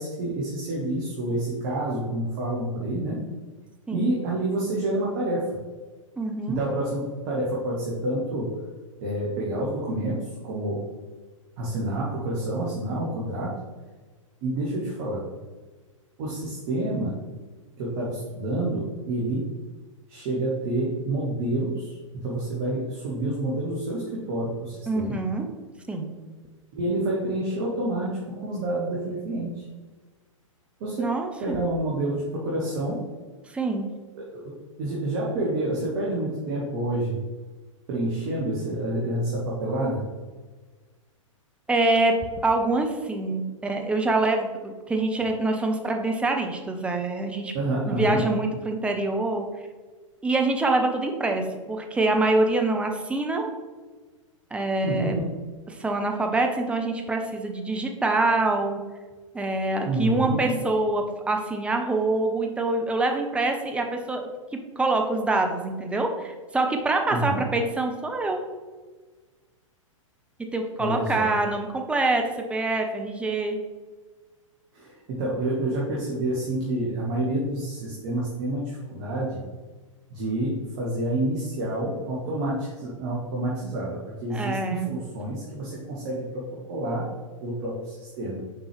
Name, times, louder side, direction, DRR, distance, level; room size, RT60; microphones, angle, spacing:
voice 1, 0.0-3.2 3.9-5.5 6.5-8.5 9.0-10.8 11.6-13.6 14.4-15.3 16.2-17.2 17.8-19.5 20.1-25.2 26.7-29.6 30.8-31.1 31.4-33.0 34.2-37.2 37.9-40.0 47.5-48.2 54.8-55.3 59.8-60.6 67.1-67.4 70.8-71.3 74.7-79.4 80.1-87.1 87.4-88.4, right 1 dB, 40° right, -4 dB, 1.4 m, -28 dB
voice 2, 6.2-6.6 24.9-25.5 25.9-26.1 31.0-31.6 33.5-33.9 41.7-42.2 42.4-47.5 47.9-49.4 50.2-53.5 54.5-55.2 55.7-58.8 59.3-64.2 64.8-68.4 70.5-73.6 84.3-84.9, right 2 dB, 5° right, 3 dB, 0.6 m, -25 dB
6.4 x 4.5 x 3.3 m, 1.4 s
figure-of-eight pair, 105°, 17 cm